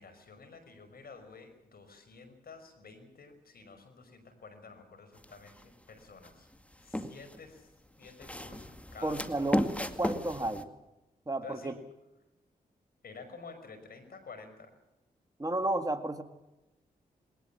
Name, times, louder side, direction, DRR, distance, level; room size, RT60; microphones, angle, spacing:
voice 1, 0.0-6.5 6.8-7.7 8.0-10.0 11.4-11.7 13.0-14.7, left 4 dB, 65° left, 9 dB, 5.6 m, -50 dB
sound 1, 5.2-5.6 6.2-7.4 8.0-10.6, left 1 dB, 10° left, 2.1 m, -35 dB
voice 2, 9.0-10.7 11.3-11.7 15.4-16.2, right 2 dB, 25° right, 8 dB, 2.2 m, -32 dB
21.0 x 19.5 x 7.2 m, 0.98 s
supercardioid pair, 45°, 16 cm